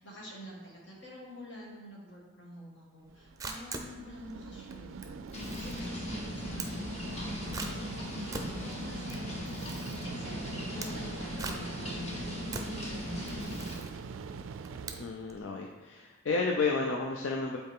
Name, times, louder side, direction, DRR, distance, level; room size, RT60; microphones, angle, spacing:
voice 1, 0.0-5.2 5.5-9.8 10.1-10.4 10.7-13.2 13.4-14.1, equal, 65° left, -4 dB, 1.9 m, -48 dB
Camera, 3.0-15.4, right 3 dB, 15° right, 0.5 m, -44 dB
sound 1, 3.1-15.0, right 5 dB, 90° right, 0.3 m, -44 dB
sound 2, 5.3-13.8, left 1 dB, 35° left, 1.0 m, -39 dB
voice 2, 15.0-17.6, left 4 dB, 85° left, 0 dB, 0.5 m, -31 dB
8.0 x 4.2 x 3.6 m, 1.3 s
head